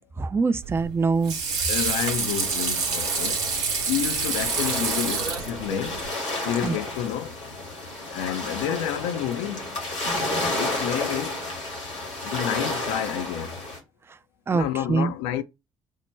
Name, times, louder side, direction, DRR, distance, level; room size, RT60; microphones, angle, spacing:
voice 1, 0.2-1.4 6.6-6.8 14.5-15.1, right 4 dB, 15° right, 0.3 m, -24 dB
Water / Sink (filling or washing), 0.6-6.1, right 5 dB, 75° right, 0.7 m, -27 dB
voice 2, 1.7-3.5 3.9-6.1 6.4-7.4 8.1-9.8 10.6-11.4 12.2-13.7 14.5-15.4, left 10 dB, 70° left, 0.4 m, -29 dB
sound 1, 1.8-13.8, left 2 dB, 85° left, 1.2 m, -32 dB
4.5 x 2.1 x 4.3 m
figure-of-eight pair, 45°, 15 cm